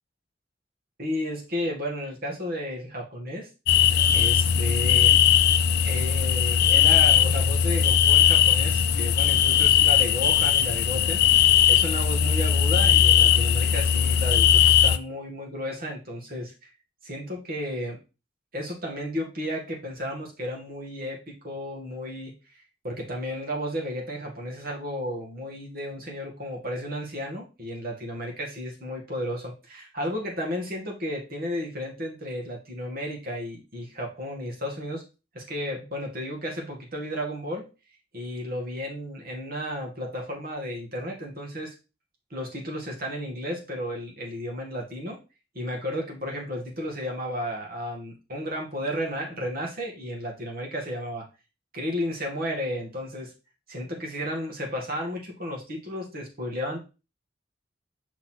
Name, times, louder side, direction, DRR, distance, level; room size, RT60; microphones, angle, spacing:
voice 1, 1.0-3.5 4.1-5.2 5.8-11.3 11.7-16.7 17.0-18.0 18.5-22.3 22.8-35.0 35.3-37.7 38.1-41.7 42.3-45.2 45.5-51.3 51.7-53.3 53.7-56.9, equal, 55° right, 0 dB, 2.1 m, -33 dB
sound 1, 3.7-15.0, left 9 dB, 60° left, 0.4 m, -19 dB
5.7 x 4.0 x 4.5 m, 0.30 s
head